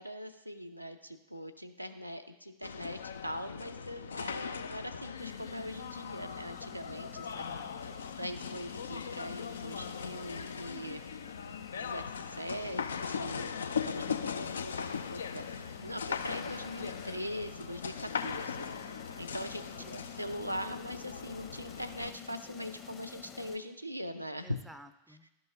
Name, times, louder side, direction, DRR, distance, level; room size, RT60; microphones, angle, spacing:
voice 1, 0.0-7.4 7.8-11.0 11.7-24.6, equal, 90° right, 7 dB, 0.4 m, -42 dB
sound 1, 2.6-22.1, left 6 dB, 70° left, 0.3 m, -39 dB
sound 2, 5.2-23.6, left 6 dB, 25° left, 0.8 m, -51 dB
voice 2, 7.1-8.0 14.0-14.6 19.5-20.0 24.4-25.3, right 1 dB, 5° right, 11 dB, 0.4 m, -55 dB
11.5 x 5.4 x 2.7 m, 0.96 s
figure-of-eight pair, 90°, 0 cm